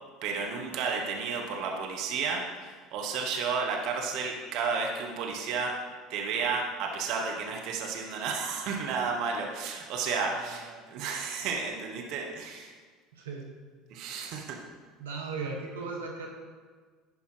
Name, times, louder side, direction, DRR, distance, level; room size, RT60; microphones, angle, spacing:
voice 1, 0.2-5.8 6.1-12.7 13.9-14.6, right 5 dB, 60° right, 1 dB, 1.2 m, -32 dB
voice 2, 10.3-10.8 13.1-13.5 15.0-16.3, right 4 dB, 85° right, 0 dB, 1.3 m, -37 dB
11.0 x 5.2 x 4.8 m, 1.5 s
hypercardioid pair, 70°, 0 cm